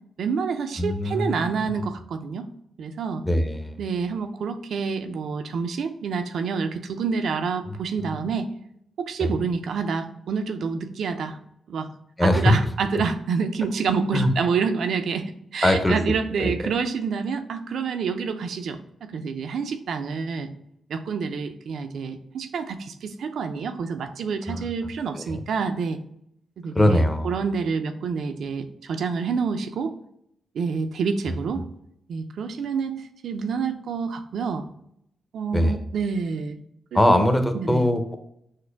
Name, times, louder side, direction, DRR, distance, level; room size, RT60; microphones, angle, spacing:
voice 1, 0.2-2.5 2.8-3.2 3.8-8.5 9.1-11.4 11.7-11.9 12.2-20.5 20.9-26.0 26.6-29.9 30.6-31.6 32.1-34.6 35.3-36.6 36.9-37.3 37.6-37.8, right 5 dB, 75° right, 8 dB, 0.5 m, -28 dB
voice 2, 0.8-1.7 3.2-3.8 7.6-7.8 9.2-9.4 12.2-12.6 14.1-14.3 15.6-16.1 16.4-16.5 24.5-24.6 25.1-25.4 26.7-27.3 31.3-31.6 35.5-35.8 36.9-38.2, left 1 dB, 15° left, 6 dB, 0.7 m, -22 dB
6.4 x 2.1 x 3.4 m, 0.75 s
cardioid pair, 75°, 0 cm